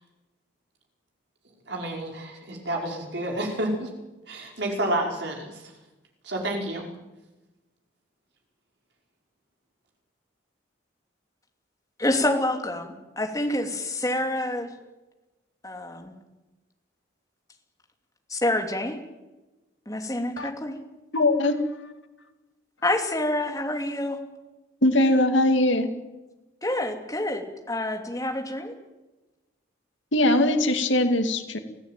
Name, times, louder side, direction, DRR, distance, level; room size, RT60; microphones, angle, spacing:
voice 1, 1.7-3.9 4.3-5.6 6.2-6.9, right 1 dB, 65° right, 1 dB, 5.3 m, -29 dB
voice 2, 12.0-14.7 15.6-16.1 18.3-19.0 19.9-20.7 22.8-24.2 26.6-28.7, left 1 dB, 15° left, 4 dB, 2.7 m, -27 dB
voice 3, 21.1-21.6 24.8-25.9 30.1-31.6, left 1 dB, 75° left, 7 dB, 2.4 m, -21 dB
24.0 x 17.0 x 9.2 m, 1.1 s
head